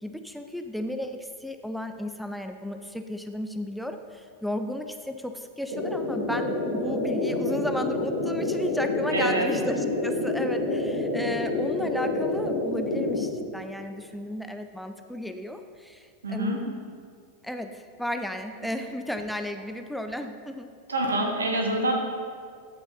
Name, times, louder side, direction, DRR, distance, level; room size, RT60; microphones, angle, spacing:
voice 1, 0.0-16.7 17.4-20.7, left 1 dB, ahead, 6 dB, 0.5 m, -34 dB
sound 1, 5.7-13.2, left 2 dB, 55° right, 2.4 m, -28 dB
voice 2, 9.1-9.5 16.2-16.6 20.9-21.9, right 1 dB, 70° right, 1 dB, 1.5 m, -26 dB
14.5 x 5.7 x 4.1 m, 2.1 s
figure-of-eight pair, 90°, 0 cm